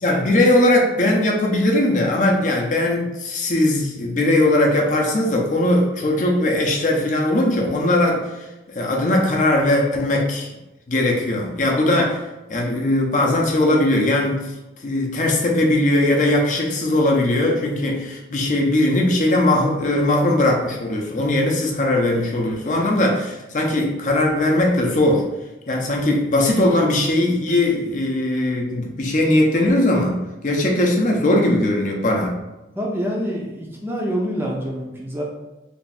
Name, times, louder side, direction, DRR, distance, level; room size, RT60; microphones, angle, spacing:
voice 1, 0.0-10.5 10.9-12.2 12.5-14.5 14.8-25.3 25.7-32.4, left 1 dB, 45° left, -1 dB, 0.6 m, -19 dB
voice 2, 32.8-35.2, equal, 10° right, -3 dB, 0.5 m, -26 dB
3.4 x 2.4 x 4.1 m, 1.0 s
head